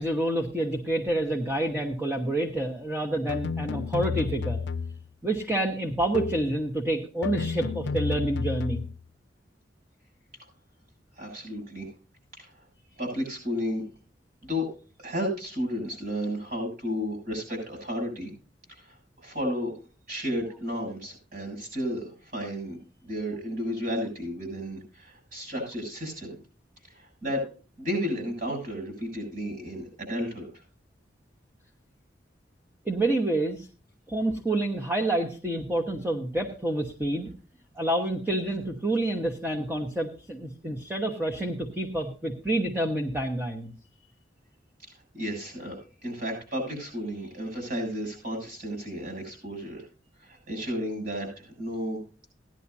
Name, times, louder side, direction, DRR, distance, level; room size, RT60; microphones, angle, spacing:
voice 1, 0.0-4.6 5.2-8.9 32.8-33.7 34.1-37.3 37.8-43.7, right 1 dB, 10° right, 2 dB, 1.1 m, -28 dB
sound 1, 3.3-5.1 6.1-6.6 7.2-9.0, left 5 dB, 70° left, 0.4 m, -31 dB
voice 2, 11.2-11.9 12.4-12.6 13.0-13.8 14.4-14.7 15.0-18.3 18.7-19.7 20.1-22.8 23.0-26.4 26.9-27.4 27.8-30.5 45.1-45.8 46.0-49.8 50.2-52.0, equal, 50° right, 2 dB, 7.9 m, -32 dB
17.0 x 11.0 x 2.7 m, 0.36 s
head